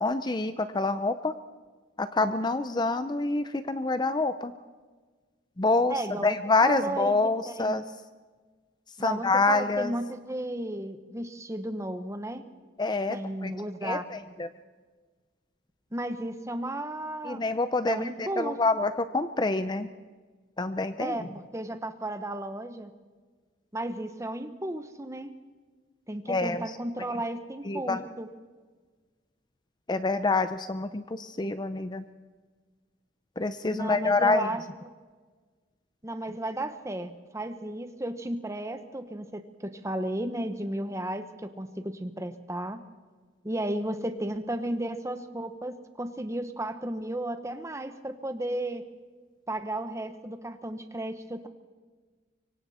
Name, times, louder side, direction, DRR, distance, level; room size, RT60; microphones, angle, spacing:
voice 1, 0.0-1.3 2.0-4.5 5.6-7.8 9.0-9.9 12.8-13.5 13.8-14.5 17.2-19.9 20.6-21.3 26.3-26.8 27.7-28.0 29.9-32.0 33.4-34.5, left 3 dB, 20° left, 11 dB, 0.6 m, -27 dB
voice 2, 5.9-6.4 6.6-7.1 7.5-7.8 9.0-12.4 13.1-14.0 15.9-17.4 17.9-18.6 21.0-22.9 23.7-25.3 26.1-28.3 33.7-34.6 36.0-42.8 43.4-48.8 49.5-51.5, right 1 dB, 15° right, 9 dB, 1.1 m, -34 dB
24.5 x 24.5 x 4.3 m, 1.4 s
head